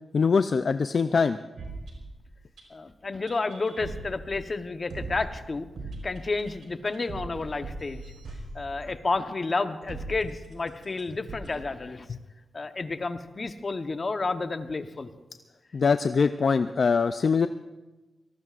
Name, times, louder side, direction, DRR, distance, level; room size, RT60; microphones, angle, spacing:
voice 1, 0.1-1.4 12.1-12.2 15.7-17.5, left 5 dB, 55° left, 10 dB, 0.4 m, -23 dB
sound 1, 1.6-2.6 3.3-4.5 4.9-9.1 9.9-11.0 11.3-11.5, right 2 dB, 80° right, 4.0 m, -40 dB
voice 2, 2.7-5.7 6.0-8.0 8.5-12.1 12.5-15.1, left 3 dB, 40° left, 8 dB, 1.0 m, -31 dB
24.5 x 18.0 x 2.5 m, 1.1 s
wide cardioid pair, 90°, 0 cm